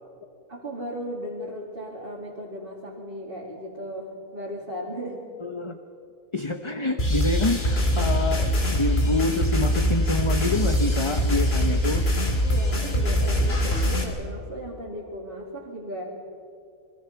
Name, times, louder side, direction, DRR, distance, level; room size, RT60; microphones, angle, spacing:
voice 1, 0.5-5.3 12.4-16.1, equal, 40° right, -3 dB, 2.9 m, -36 dB
voice 2, 5.4-5.8 6.3-12.0, left 2 dB, 25° left, 7 dB, 0.8 m, -27 dB
sound 1, 7.0-14.0, equal, 45° left, 3.2 m, -23 dB
27.5 x 21.5 x 5.8 m, 2.5 s
omnidirectional pair, 1.5 m